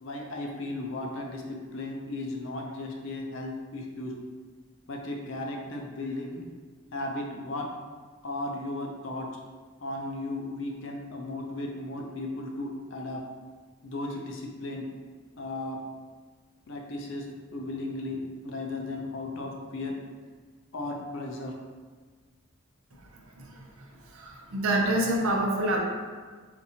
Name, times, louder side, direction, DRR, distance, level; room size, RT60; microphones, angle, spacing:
voice 1, 0.0-4.1 4.9-6.4 6.9-7.7 8.2-9.3 9.8-13.2 13.8-14.8 15.4-15.8 16.7-17.3 17.5-20.0 20.7-21.5, left 2 dB, 65° left, 1 dB, 0.5 m, -35 dB
voice 2, 24.1-25.8, right 1 dB, 80° right, -1 dB, 0.7 m, -27 dB
4.2 x 2.6 x 2.8 m, 1.5 s
head